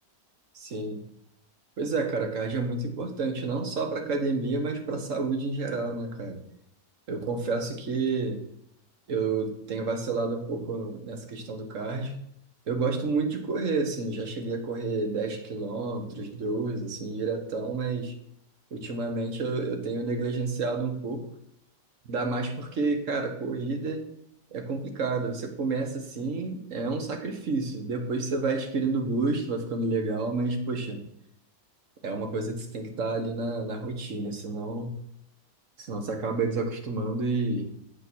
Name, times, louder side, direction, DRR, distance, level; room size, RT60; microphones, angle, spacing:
voice 1, 0.6-1.0 1.8-6.4 7.1-8.4 9.1-12.2 12.7-18.1 18.7-21.3 22.1-24.1 24.5-31.0 32.0-34.9 35.8-37.8, right 3 dB, 50° right, 5 dB, 1.6 m, -30 dB
8.6 x 5.8 x 6.2 m, 0.75 s
omnidirectional pair, 1.8 m